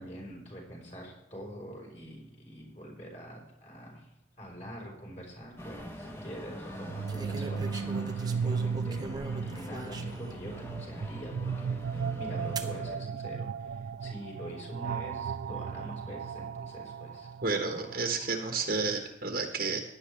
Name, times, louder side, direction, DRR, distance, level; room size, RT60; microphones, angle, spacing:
voice 1, 0.0-4.1 4.4-9.1 9.4-17.3, equal, 35° left, -1 dB, 4.7 m, -44 dB
sound 1, 5.4-5.8 7.1-10.4 11.0-11.1 12.6-12.8 13.7-14.1, right 2 dB, 20° right, 0.9 m, -41 dB
sound 2, 5.6-13.0, left 1 dB, 15° left, 1.3 m, -45 dB
sound 3, 6.7-18.6, right 6 dB, 70° right, 0.3 m, -35 dB
voice 2, 17.4-19.8, right 4 dB, 50° right, 3 dB, 1.3 m, -31 dB
16.0 x 11.0 x 3.4 m, 0.83 s
head